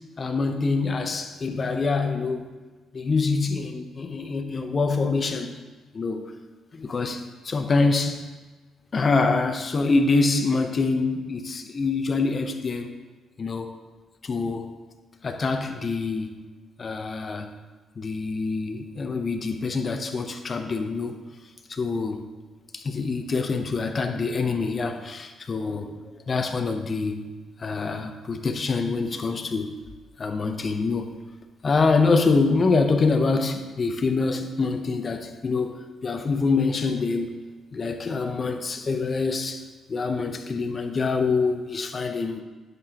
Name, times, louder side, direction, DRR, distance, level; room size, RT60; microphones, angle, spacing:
voice 1, 0.2-2.5 2.9-5.5 5.9-6.3 6.7-8.3 8.9-12.9 13.4-13.7 14.2-14.8 15.2-16.3 16.8-17.5 18.0-21.2 21.7-22.2 22.7-27.2 27.6-29.7 30.2-31.1 31.6-37.4 37.7-39.6 39.9-42.4, left 4 dB, 40° left, 6 dB, 0.8 m, -25 dB
9.7 x 6.8 x 3.0 m, 1.3 s
cardioid pair, 90°, 0 cm